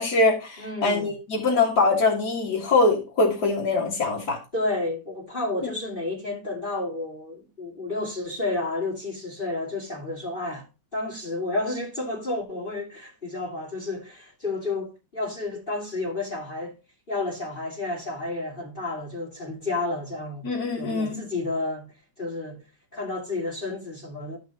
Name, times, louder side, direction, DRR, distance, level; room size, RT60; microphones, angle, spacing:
voice 1, 0.0-4.4 5.6-5.7 20.4-21.3, left 3 dB, 50° left, 2.4 m, -23 dB
voice 2, 0.6-1.1 4.5-10.7 10.9-16.8 17.1-20.5 20.8-22.6 22.9-24.4, left 2 dB, 25° left, 2.5 m, -31 dB
13.5 x 5.4 x 2.9 m
omnidirectional pair, 2.3 m